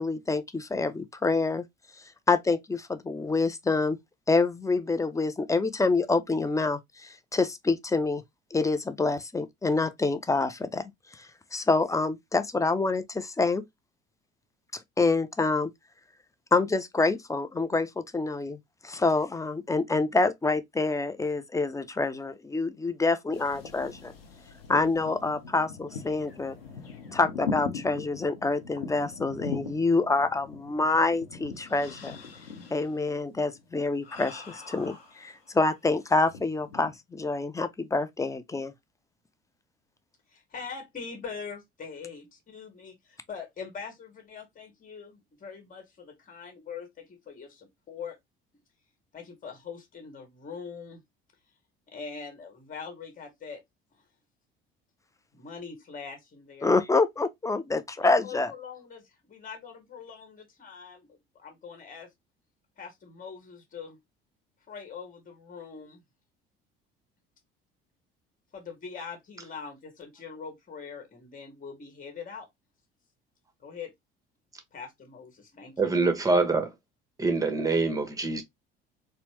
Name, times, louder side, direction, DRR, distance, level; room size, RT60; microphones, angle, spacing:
voice 1, 0.0-1.6 2.3-4.0 4.3-8.2 8.5-10.8 11.1-13.6 14.7-15.7 16.5-18.6 18.8-24.1 24.7-26.6 27.1-32.2 32.7-38.7 56.6-58.5, left 3 dB, 10° left, 0.5 m, -27 dB
sound 1, 23.3-35.7 36.2-37.0, left 4 dB, 85° left, 0.8 m, -41 dB
voice 2, 40.3-48.2 49.1-51.0 51.9-53.6 55.3-56.7 58.2-62.1 62.8-64.0 64.7-66.0 68.5-72.5 73.6-73.9 74.7-75.7, left 5 dB, 30° left, 1.3 m, -42 dB
voice 3, 75.8-76.7 77.2-78.4, right 3 dB, 10° right, 1.1 m, -25 dB
4.2 x 2.2 x 2.8 m
figure-of-eight pair, 60°, 29 cm